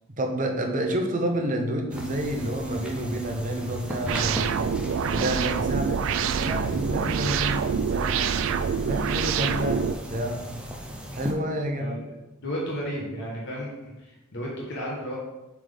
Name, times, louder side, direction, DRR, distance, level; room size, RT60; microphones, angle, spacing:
voice 1, 0.2-4.5 5.1-8.4 8.8-10.5 11.1-12.0, right 1 dB, 40° right, 3 dB, 0.8 m, -29 dB
sound 1, 1.9-11.3, equal, 5° right, 0.5 m, -37 dB
sound 2, 4.1-10.0, right 6 dB, 65° right, 0.3 m, -26 dB
voice 2, 11.8-12.1 12.4-15.2, equal, 55° left, -5 dB, 1.3 m, -33 dB
7.2 x 3.7 x 3.5 m, 1.0 s
head